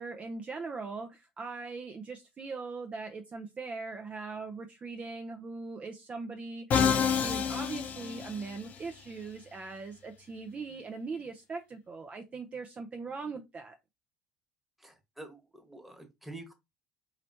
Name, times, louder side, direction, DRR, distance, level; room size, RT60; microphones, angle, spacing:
voice 1, 0.0-6.7 7.2-13.7, right 4 dB, 30° right, 0.6 m, -40 dB
Musical instrument, 6.7-8.8, left 7 dB, 45° left, 0.8 m, -28 dB
voice 2, 14.8-16.5, right 2 dB, 5° right, 1.4 m, -47 dB
4.2 x 3.0 x 2.7 m
hypercardioid pair, 65°, 4 cm